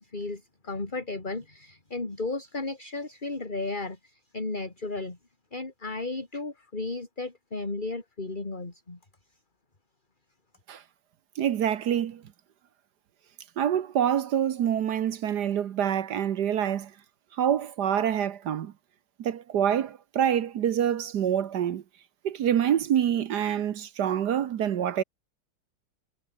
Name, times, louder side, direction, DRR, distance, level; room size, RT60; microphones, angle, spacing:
voice 1, 0.0-5.2 5.5-9.0, left 3 dB, 20° left, 2.9 m, -34 dB
voice 2, 11.4-12.2 13.6-16.9 17.4-18.7 19.2-21.8 22.2-25.0, right 9 dB, 60° right, 1.3 m, -26 dB
omnidirectional pair, 2.4 m